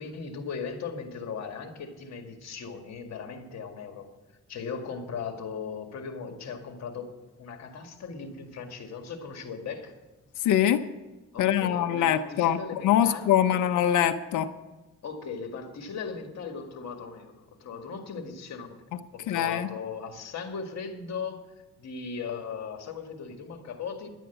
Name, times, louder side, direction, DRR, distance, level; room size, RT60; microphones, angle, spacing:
voice 1, 0.0-4.1 4.5-7.1 7.4-9.9 11.3-13.6 15.0-18.7 19.1-21.4 21.8-24.1, left 5 dB, 60° left, 5 dB, 2.0 m, -38 dB
voice 2, 10.4-10.9 11.4-14.5 19.3-19.7, left 10 dB, 80° left, 9 dB, 0.7 m, -24 dB
11.0 x 9.2 x 8.0 m, 1.1 s
cardioid pair, 90°, 30 cm